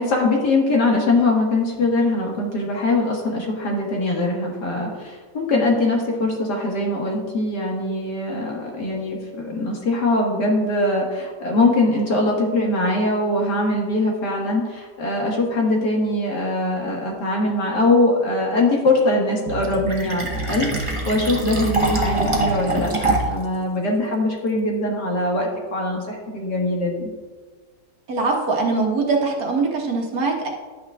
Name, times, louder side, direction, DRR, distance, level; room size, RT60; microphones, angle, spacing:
voice 1, 0.0-27.1, left 2 dB, 70° left, -1 dB, 2.1 m, -22 dB
Fill (with liquid), 19.5-23.5, right 2 dB, 25° right, 0.7 m, -24 dB
voice 2, 28.1-30.5, right 3 dB, 60° right, 0 dB, 1.6 m, -22 dB
11.5 x 8.6 x 2.3 m, 1.4 s
omnidirectional pair, 1.9 m